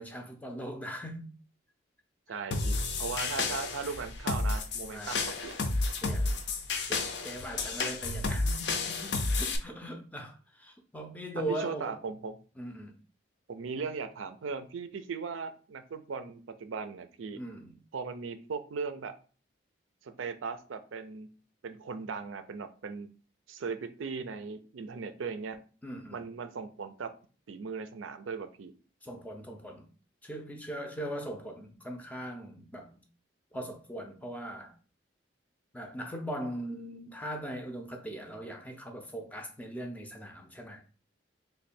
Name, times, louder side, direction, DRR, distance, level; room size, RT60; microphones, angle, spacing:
voice 1, 0.0-1.3 4.9-5.3 6.0-6.4 6.9-12.0 12.6-13.0 17.3-17.7 25.8-26.2 29.0-29.9 30.2-33.0 33.5-34.7 35.7-40.8, right 1 dB, 10° left, 0.4 m, -40 dB
voice 2, 2.3-5.6 11.5-12.4 13.5-17.4 17.9-19.1 20.0-21.3 21.6-23.1 23.5-25.6 26.1-27.1 27.5-28.7, right 5 dB, 90° right, 0.5 m, -38 dB
sound 1, 2.5-9.6, left 3 dB, 60° left, 0.5 m, -31 dB
3.1 x 2.2 x 4.2 m
head